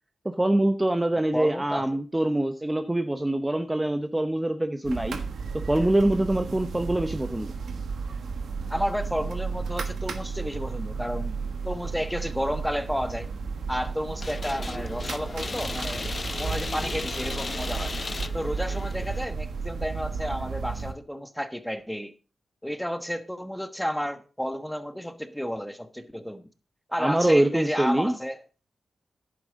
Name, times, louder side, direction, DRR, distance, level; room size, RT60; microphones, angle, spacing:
voice 1, 0.2-5.2 5.6-7.5 27.0-28.1, right 1 dB, 15° right, 0.8 m, -24 dB
voice 2, 1.3-1.9 8.7-13.3 13.7-16.1 16.4-17.9 18.3-22.1 22.6-26.4 26.9-28.4, equal, ahead, 1.2 m, -31 dB
sound 1, 4.8-20.9, right 5 dB, 80° right, 1.4 m, -33 dB
sound 2, 14.2-19.2, left 3 dB, 40° left, 0.5 m, -35 dB
11.0 x 8.8 x 3.9 m
cardioid pair, 75°, 0 cm